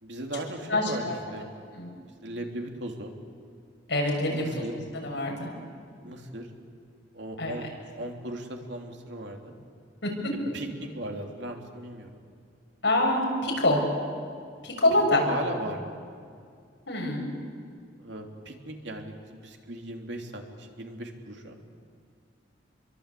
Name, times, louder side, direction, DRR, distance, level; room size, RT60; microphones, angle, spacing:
voice 1, 0.0-1.5 2.2-3.1 4.3-4.7 6.0-6.5 7.1-7.7 8.0-9.5 10.5-12.2 15.1-15.8 18.0-21.6, right 1 dB, 70° right, 2 dB, 3.1 m, -37 dB
voice 2, 0.7-1.2 1.8-1.9 3.9-5.5 7.4-7.6 10.0-10.3 12.8-13.8 14.6-15.2 16.9-17.2, left 1 dB, 70° left, 0 dB, 6.7 m, -26 dB
28.5 x 22.5 x 8.4 m, 2.2 s
head